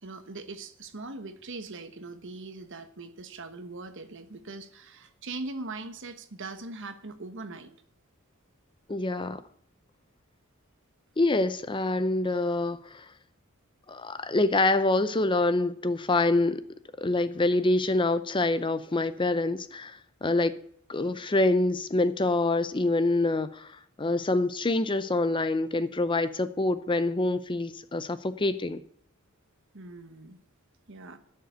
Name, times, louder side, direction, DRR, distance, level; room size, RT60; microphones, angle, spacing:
voice 1, 0.0-7.7 29.7-30.4 30.9-31.2, right 3 dB, 60° right, 1.2 m, -41 dB
voice 2, 8.9-9.4 11.2-13.1 13.9-16.6 17.0-20.5 20.9-28.8, left 2 dB, 25° left, 0.6 m, -26 dB
11.0 x 6.6 x 9.4 m
head